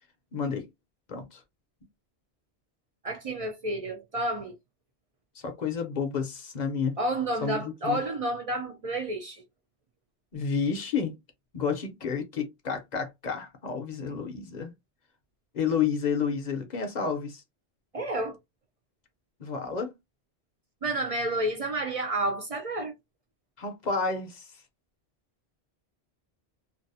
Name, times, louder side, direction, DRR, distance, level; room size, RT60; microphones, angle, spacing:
voice 1, 0.3-0.7 1.1-1.4 5.3-7.0 7.4-8.0 10.3-11.2 11.5-14.7 15.5-17.4 19.4-19.9 23.6-24.5, left 6 dB, 50° left, 0.6 m, -30 dB
voice 2, 3.0-4.5 7.0-9.4 17.9-18.4 20.8-22.9, right 1 dB, 50° right, 0.4 m, -30 dB
2.5 x 2.0 x 2.6 m
omnidirectional pair, 1.1 m